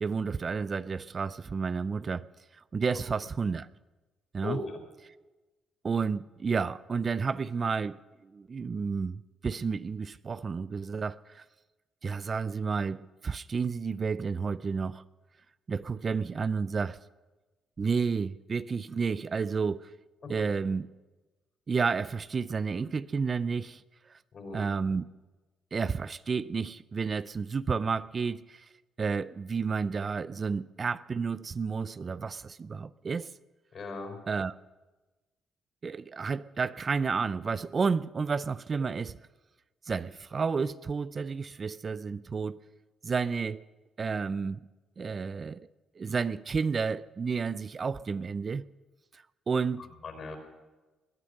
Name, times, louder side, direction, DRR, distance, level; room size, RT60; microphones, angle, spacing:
voice 1, 0.0-2.3 2.7-3.7 4.3-4.6 5.0-5.1 5.8-8.0 8.2-11.4 12.0-15.0 15.7-17.0 17.8-19.9 20.3-20.9 21.7-23.8 24.1-24.2 24.5-25.0 25.7-28.7 29.0-33.3 34.3-34.5 35.8-39.2 39.9-42.6 43.0-43.6 44.0-44.6 45.0-45.7 46.0-48.6 49.1-49.9, right 5 dB, 40° right, 0.4 m, -31 dB
voice 2, 4.4-4.8 20.2-20.3 24.3-24.6 33.7-34.2 50.0-50.4, left 4 dB, 50° left, 4.7 m, -37 dB
21.0 x 10.0 x 6.5 m
cardioid pair, 90°, 0 cm